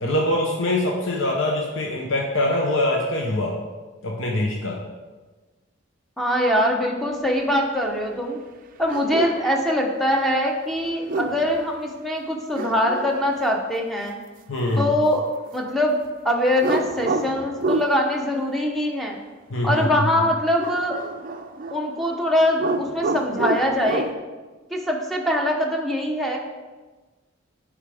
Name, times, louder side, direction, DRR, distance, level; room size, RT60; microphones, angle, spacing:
voice 1, 0.0-3.5 4.0-4.8 14.5-14.9 19.5-20.0, left 1 dB, 70° left, -1 dB, 0.8 m, -23 dB
voice 2, 6.2-8.4 8.8-14.2 14.8-16.0 16.2-19.2 19.6-21.0 21.7-24.1 24.7-26.4, left 1 dB, ahead, 0 dB, 0.8 m, -23 dB
sound 1, 8.9-9.4 10.9-11.6 12.5-13.6 16.6-18.0 20.6-22.2 22.5-24.1, right 3 dB, 45° right, 0.4 m, -28 dB
8.4 x 4.9 x 3.4 m, 1.3 s
head